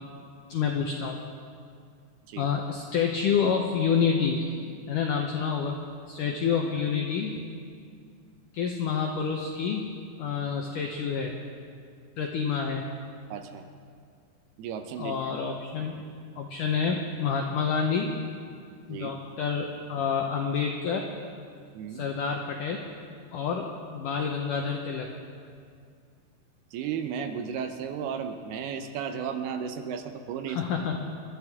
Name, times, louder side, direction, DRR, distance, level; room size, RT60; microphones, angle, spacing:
voice 1, 0.5-1.2 2.4-4.5 4.9-5.8 6.1-7.4 8.5-11.3 12.2-12.8 15.0-15.9 16.4-18.1 18.9-21.1 21.9-22.8 23.3-25.1 30.5-31.1, left 6 dB, 90° left, 1 dB, 1.8 m, -28 dB
voice 2, 13.3-13.7 14.6-15.4 18.9-19.2 21.7-22.1 26.7-30.6, right 7 dB, 75° right, 7 dB, 2.6 m, -34 dB
27.5 x 12.0 x 3.6 m, 2.3 s
omnidirectional pair, 4.9 m